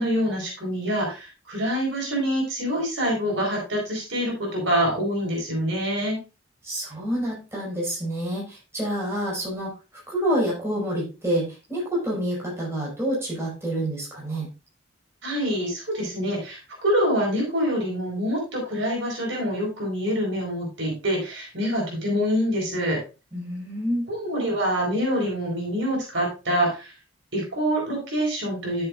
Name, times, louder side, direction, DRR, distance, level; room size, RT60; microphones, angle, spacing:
voice 1, 0.0-6.2 15.2-23.0 24.1-26.9 27.3-28.9, equal, 65° right, -1 dB, 4.7 m, -26 dB
voice 2, 6.6-9.7 10.1-14.5 23.3-24.1, equal, 15° right, -5 dB, 5.1 m, -28 dB
12.0 x 7.6 x 2.5 m, 0.30 s
head